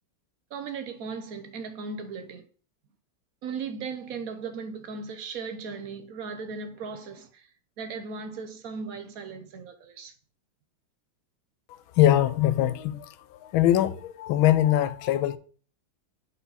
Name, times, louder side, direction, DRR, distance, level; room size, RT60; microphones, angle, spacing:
voice 1, 0.5-2.5 3.4-7.5 7.8-10.1, right 5 dB, 55° right, 1.2 m, -37 dB
voice 2, 11.9-13.1 13.4-15.4, left 12 dB, 85° left, 1.4 m, -22 dB
8.2 x 5.5 x 4.1 m
omnidirectional pair, 2.2 m